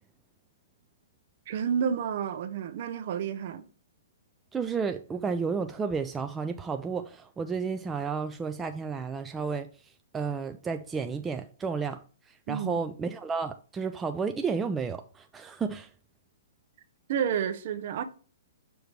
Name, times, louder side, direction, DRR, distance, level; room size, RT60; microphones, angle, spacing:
voice 1, 1.5-3.7 12.5-12.8 17.1-18.0, right 8 dB, 55° right, 0.8 m, -30 dB
voice 2, 4.5-12.0 12.3-15.9, right 5 dB, 15° right, 0.4 m, -32 dB
6.6 x 3.1 x 4.7 m
hypercardioid pair, 140°, 0 cm